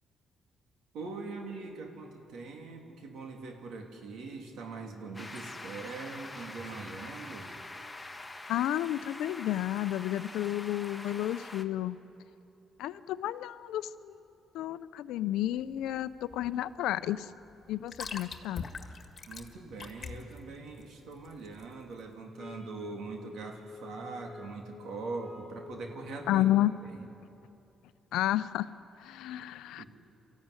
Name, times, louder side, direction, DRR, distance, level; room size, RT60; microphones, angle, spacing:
voice 1, 0.9-7.5 19.3-26.5 26.8-27.1 29.8-29.9, right 3 dB, 75° right, 2 dB, 2.9 m, -42 dB
sound 1, 5.1-11.6, left 2 dB, 15° left, 1.4 m, -45 dB
voice 2, 8.5-12.0 12.8-14.2 14.5-17.3 17.7-18.6 26.3-26.7 28.1-28.7 29.0-29.8, left 13 dB, 90° left, 15 dB, 0.6 m, -31 dB
sound 2, 15.3-22.1, left 5 dB, 40° left, 1.8 m, -45 dB
sound 3, 22.3-26.7, left 4 dB, 40° right, 3.7 m, -49 dB
24.0 x 14.5 x 9.7 m, 2.9 s
cardioid pair, 90°, 0 cm